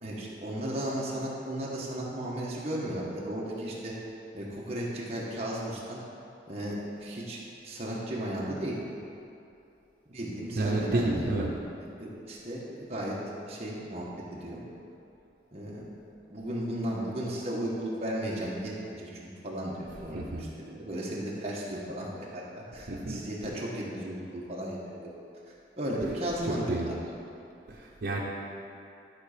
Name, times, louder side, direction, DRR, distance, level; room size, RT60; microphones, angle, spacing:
voice 1, 0.0-3.9 4.3-6.0 6.5-7.4 7.6-8.8 10.1-11.3 12.0-13.2 13.4-14.6 15.5-15.8 16.3-19.1 19.4-25.1 25.8-26.9, right 1 dB, 35° right, -5 dB, 1.4 m, -35 dB
voice 2, 10.6-11.5 20.1-20.4 22.9-23.2 26.5-26.9 27.7-28.2, right 2 dB, 75° right, -4 dB, 0.8 m, -30 dB
11.5 x 4.0 x 5.0 m, 2.7 s
head